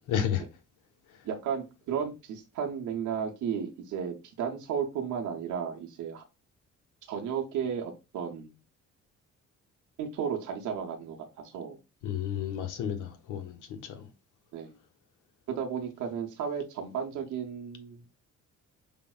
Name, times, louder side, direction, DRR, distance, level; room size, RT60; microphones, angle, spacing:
voice 1, 0.1-0.4 12.0-14.1, left 9 dB, 80° left, 0.7 m, -32 dB
voice 2, 1.2-6.2 7.1-8.6 10.0-11.8 14.5-14.7 15.5-18.1, right 7 dB, 80° right, 0.8 m, -34 dB
5.0 x 2.0 x 2.3 m
cardioid pair, 90°, 30 cm